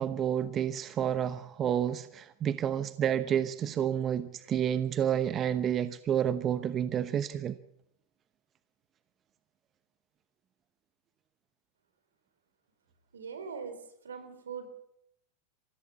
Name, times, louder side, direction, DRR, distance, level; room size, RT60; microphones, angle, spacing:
voice 1, 0.0-7.6, right 9 dB, 35° right, 1.0 m, -30 dB
voice 2, 13.1-14.7, right 6 dB, 85° right, 4.2 m, -41 dB
24.0 x 15.5 x 7.1 m
hypercardioid pair, 100°, 0 cm